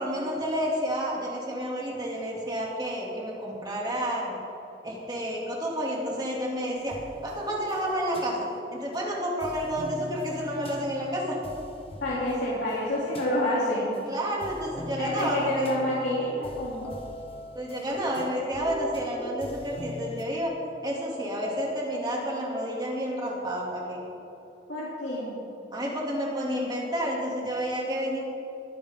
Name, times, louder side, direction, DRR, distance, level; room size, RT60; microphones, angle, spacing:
voice 1, 0.0-4.3 4.8-6.9 7.2-8.4 8.7-11.4 14.1-15.7 17.5-20.5 20.8-24.0 25.7-28.2, equal, 25° right, -3 dB, 2.5 m, -30 dB
sound 1, 6.8-9.0 9.4-14.0 14.4-20.2, left 1 dB, 35° left, 1.3 m, -43 dB
voice 2, 12.0-13.9 15.0-16.9 24.7-25.3, left 1 dB, 85° left, -7 dB, 3.0 m, -28 dB
21.5 x 9.8 x 3.7 m, 3.0 s
head